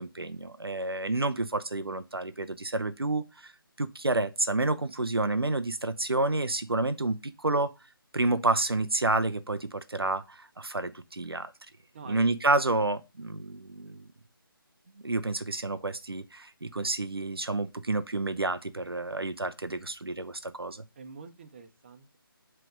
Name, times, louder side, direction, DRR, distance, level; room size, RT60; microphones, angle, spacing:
voice 1, 0.0-3.5 3.8-7.7 8.1-11.5 12.1-14.1 15.0-20.8, right 2 dB, 85° right, 0.6 m, -29 dB
voice 2, 11.9-12.3 21.0-22.2, right 5 dB, 30° right, 0.9 m, -46 dB
7.7 x 3.4 x 5.2 m
figure-of-eight pair, 150°, 12 cm